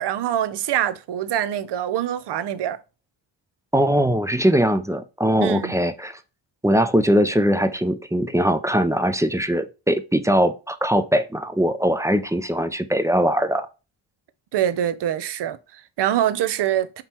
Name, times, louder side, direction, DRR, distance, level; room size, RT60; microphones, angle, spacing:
voice 1, 0.0-2.8 5.4-5.8 14.5-17.0, right 11 dB, 65° right, 0.6 m, -24 dB
voice 2, 3.7-6.2 6.6-13.7, equal, 5° right, 0.4 m, -21 dB
3.7 x 2.9 x 4.3 m
cardioid pair, 65°, 44 cm